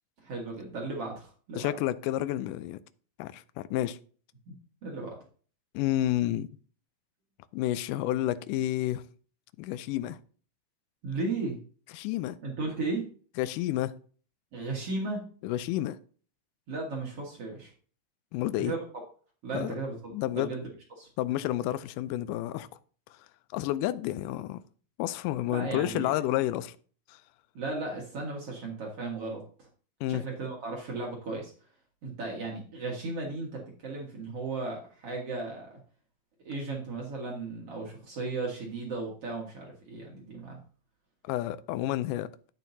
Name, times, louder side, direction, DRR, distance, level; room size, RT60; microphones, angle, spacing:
voice 1, 0.2-1.7 4.5-4.6 4.8-5.2 11.0-11.6 12.4-13.1 14.5-15.2 16.7-17.7 18.6-18.8 19.4-20.0 20.3-20.6 21.0-21.1 25.5-26.1 27.5-29.7 30.1-31.5 32.0-35.8 36.5-40.6, right 3 dB, 50° right, 2.3 m, -35 dB
voice 2, 1.6-2.8 3.2-4.0 5.7-6.5 7.5-9.0 9.6-10.2 11.9-12.4 13.4-13.9 15.4-16.0 18.3-18.7 19.5-19.8 20.1-20.5 21.2-22.7 23.5-24.6 25.0-26.8 27.1-27.2 30.0-30.2 41.2-42.3, left 14 dB, 80° left, 2.1 m, -30 dB
10.0 x 9.1 x 2.7 m
omnidirectional pair, 3.9 m